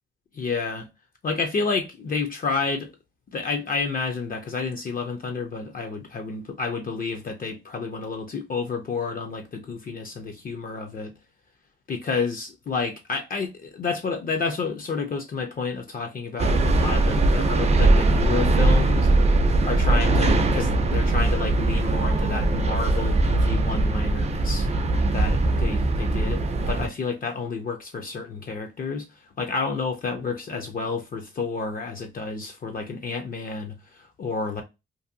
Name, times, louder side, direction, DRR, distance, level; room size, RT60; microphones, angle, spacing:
voice 1, 0.3-0.9 1.2-2.9 3.3-11.1 11.9-19.1 19.6-24.7 25.1-29.1 29.4-34.6, left 4 dB, 45° left, 0.4 m, -30 dB
sound 1, 16.4-26.9, right 2 dB, 35° right, 0.4 m, -21 dB
2.6 x 2.5 x 2.5 m
wide cardioid pair, 160°, 20 cm